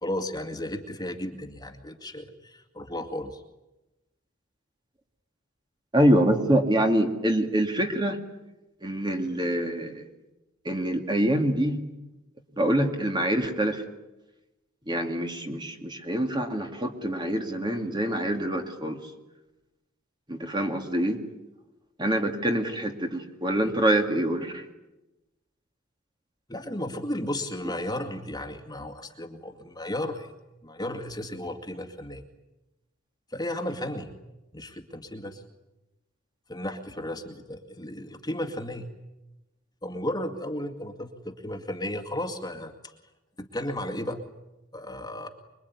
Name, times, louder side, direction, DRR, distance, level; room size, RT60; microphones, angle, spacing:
voice 1, 0.0-3.4 26.5-30.3 30.6-32.2 33.3-34.1 34.5-35.4 36.5-38.9 39.8-42.9 43.4-44.2 44.7-45.3, left 1 dB, 20° left, 4 dB, 2.2 m, -34 dB
voice 2, 5.9-8.2 8.8-10.1 10.6-11.8 12.5-13.8 14.9-19.0 20.3-21.2 22.0-24.7, right 1 dB, 20° right, 4 dB, 2.5 m, -25 dB
26.0 x 22.5 x 9.7 m, 1.0 s
head